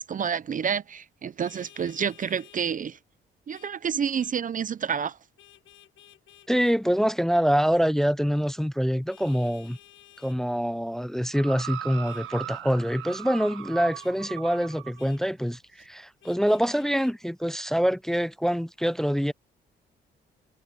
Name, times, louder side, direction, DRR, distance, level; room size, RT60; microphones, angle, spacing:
voice 1, 0.0-3.0 3.5-5.2, right 7 dB, 40° right, 0.7 m, -29 dB
Vehicle horn car horn honking, 1.4-2.6 3.5-3.7 4.1-4.4 5.4-6.8 9.1-10.4 12.0-12.2 13.1-13.3 13.9-14.1 15.0-15.2 16.2-17.1, left 13 dB, 75° left, 1.2 m, -54 dB
voice 2, 6.5-9.8 10.2-19.3, equal, ahead, 0.7 m, -25 dB
sound 1, 11.3-15.0 15.8-15.9, right 11 dB, 85° right, 1.6 m, -39 dB
cardioid pair, 90°, 20 cm